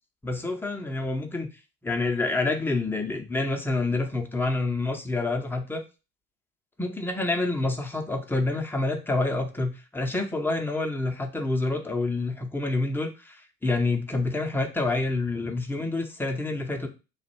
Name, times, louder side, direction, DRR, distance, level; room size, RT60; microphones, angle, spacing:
voice 1, 0.2-1.5 1.8-5.8 6.8-16.9, left 2 dB, 5° left, 2 dB, 0.7 m, -28 dB
3.2 x 2.4 x 4.4 m, 0.30 s
figure-of-eight pair, 65°, 41 cm